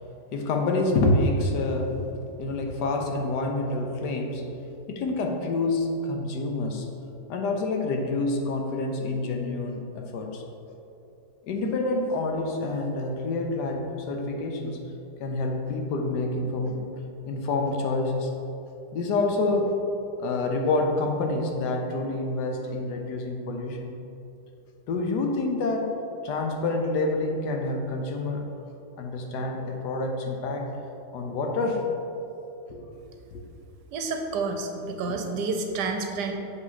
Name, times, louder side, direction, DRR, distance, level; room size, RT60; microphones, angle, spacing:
voice 1, 0.3-2.0 2.4-4.5 4.9-6.9 7.3-10.4 11.5-14.8 15.2-16.8 17.3-18.3 18.9-19.8 20.2-23.9 24.9-28.5 29.0-30.7 31.1-31.9 32.7-33.4, left 2 dB, 70° left, 2 dB, 1.3 m, -27 dB
voice 2, 33.9-36.3, right 3 dB, 70° right, 4 dB, 1.1 m, -29 dB
7.3 x 5.3 x 4.0 m, 2.8 s
omnidirectional pair, 1.9 m